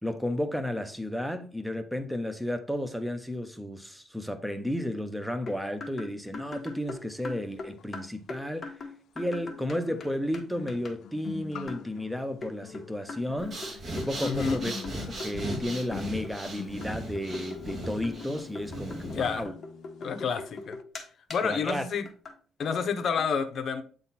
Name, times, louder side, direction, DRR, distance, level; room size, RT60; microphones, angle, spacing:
voice 1, 0.0-8.7 9.2-13.6 13.9-14.7 15.1-19.5 21.4-21.8, left 1 dB, ahead, 0.8 m, -33 dB
sound 1, 5.5-10.1 10.3-10.4 10.7-10.9 11.7-11.9 12.4-15.7 15.9-16.5 16.8-21.0 21.3-21.4 21.7-21.8 22.1-22.3 22.6-22.7 23.0-23.3, left 3 dB, 30° left, 1.4 m, -41 dB
sound 2, 7.8-7.9 9.2-20.3 20.5-20.8, left 8 dB, 70° left, 0.5 m, -45 dB
Breathing, 13.4-19.4, right 1 dB, 40° right, 1.8 m, -38 dB
voice 2, 14.2-14.6 19.0-19.4 20.0-20.8 21.3-22.1 22.6-23.8, left 6 dB, 55° left, 0.9 m, -29 dB
8.3 x 4.0 x 4.1 m
cardioid pair, 130°, 0 cm